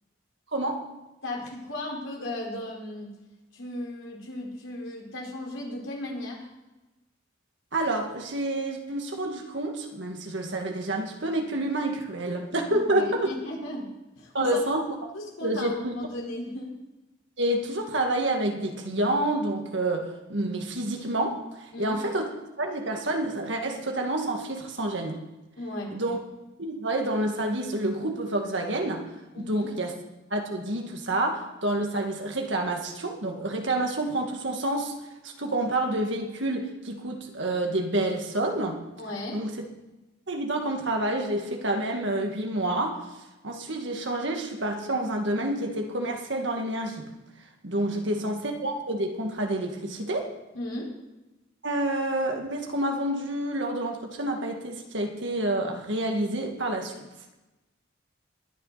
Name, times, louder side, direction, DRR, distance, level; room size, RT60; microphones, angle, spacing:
voice 1, 0.5-0.8 7.7-13.3 14.3-14.8 15.4-15.9 17.4-21.4 21.8-22.3 22.6-25.2 25.9-26.2 26.6-29.1 29.4-29.9 30.3-34.9 35.4-38.8 39.3-39.6 40.3-43.1 43.4-47.0 47.6-50.3 51.6-56.9, right 1 dB, 65° right, 2 dB, 2.0 m, -28 dB
voice 2, 1.2-3.2 3.5-6.4 12.7-13.9 14.2-14.8 15.1-16.8 21.7-22.0 25.6-26.0 29.3-29.7 39.0-39.4 48.0-48.3 50.5-50.9, left 1 dB, 85° left, -2 dB, 4.7 m, -36 dB
21.5 x 9.6 x 4.2 m, 1.0 s
head